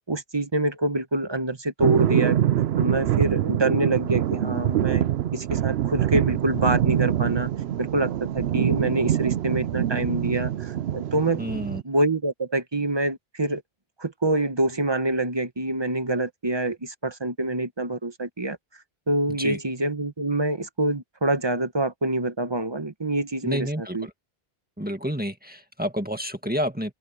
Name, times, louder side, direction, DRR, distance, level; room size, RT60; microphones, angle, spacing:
voice 1, 0.1-2.4 2.8-5.0 5.3-7.5 7.8-11.4 11.8-13.6 14.0-18.6 19.1-24.1, right 2 dB, 25° right, 1.0 m, -26 dB
sound 1, 1.8-11.8, right 11 dB, 90° right, 0.9 m, -24 dB
voice 2, 11.4-11.8 19.4-19.6 23.4-24.1 24.8-26.9, equal, 10° right, 1.8 m, -29 dB
open air
omnidirectional pair, 1.0 m